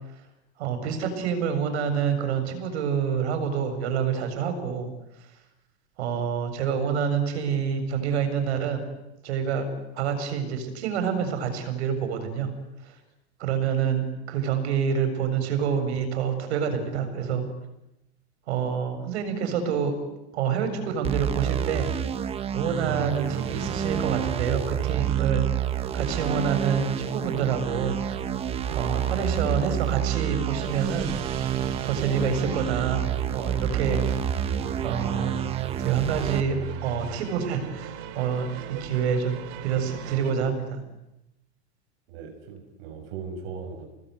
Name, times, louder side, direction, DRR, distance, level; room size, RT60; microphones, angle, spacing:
voice 1, 0.6-4.9 6.0-8.8 9.2-9.7 9.9-12.5 12.8-12.9 13.4-17.4 18.5-19.9 20.3-21.9 22.5-25.4 25.9-28.0 28.7-31.1 31.8-34.0 34.8-35.4 35.8-36.6 36.8-40.8, right 7 dB, 75° right, 7 dB, 7.4 m, -27 dB
sound 1, 21.0-36.4, right 9 dB, 20° right, 1.1 m, -29 dB
sound 2, 22.8-40.3, right 10 dB, 40° right, 2.6 m, -38 dB
voice 2, 42.1-43.9, right 5 dB, 60° right, 3 dB, 6.7 m, -38 dB
30.0 x 20.0 x 9.7 m, 0.90 s
supercardioid pair, 160°, 33 cm